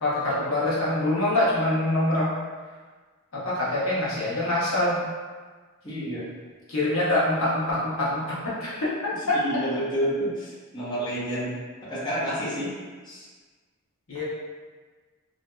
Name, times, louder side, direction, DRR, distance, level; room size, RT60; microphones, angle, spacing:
voice 1, 0.0-2.3 3.3-5.0 6.7-9.4 14.1-14.2, left 1 dB, 70° left, -7 dB, 0.8 m, -25 dB
voice 2, 5.8-6.3 9.4-11.6 11.8-12.7 13.1-13.2, equal, 20° left, -10 dB, 0.7 m, -29 dB
2.8 x 2.7 x 2.3 m, 1.4 s
head